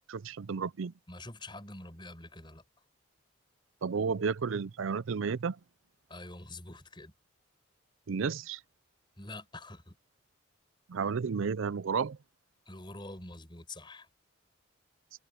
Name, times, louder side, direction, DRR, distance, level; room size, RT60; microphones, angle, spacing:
voice 1, 0.1-0.9 3.8-5.6 8.1-8.6 10.9-12.2, right 5 dB, 75° right, 0.5 m, -32 dB
voice 2, 1.1-2.6 6.1-7.1 9.2-9.9 12.7-14.1, left 2 dB, 25° left, 5.9 m, -46 dB
head